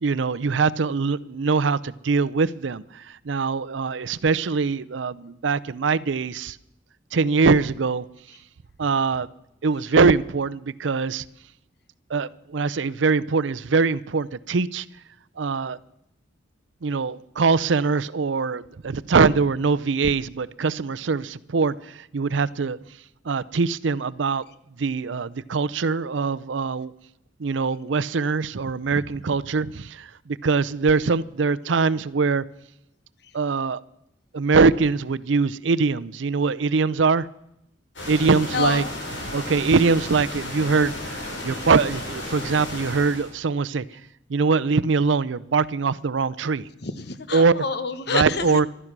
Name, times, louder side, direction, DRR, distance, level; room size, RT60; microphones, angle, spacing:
voice 1, 0.0-6.6 7.1-8.0 8.8-9.3 9.6-11.2 12.1-14.9 15.4-15.8 16.8-22.8 23.2-24.4 24.8-26.9 27.4-32.4 33.3-33.8 34.3-37.3 38.1-38.8 39.2-43.8 44.3-46.7 47.3-47.5 48.1-48.7, right 4 dB, 85° right, 0.6 m, -22 dB
sound 1, 38.0-43.3, left 1 dB, 90° left, 5.2 m, -34 dB
voice 2, 38.5-38.9 46.8-48.6, left 4 dB, 60° left, 1.1 m, -27 dB
15.0 x 12.5 x 6.0 m
head